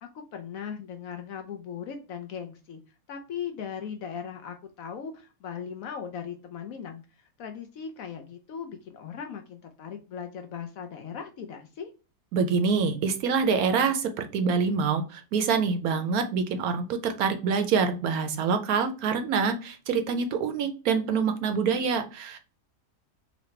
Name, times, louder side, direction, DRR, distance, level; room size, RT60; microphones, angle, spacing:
voice 1, 0.0-2.8 3.1-11.9, left 7 dB, 70° left, 5 dB, 0.9 m, -38 dB
voice 2, 12.3-22.4, right 5 dB, 70° right, 7 dB, 1.0 m, -26 dB
4.0 x 2.8 x 3.2 m, 0.33 s
omnidirectional pair, 1.8 m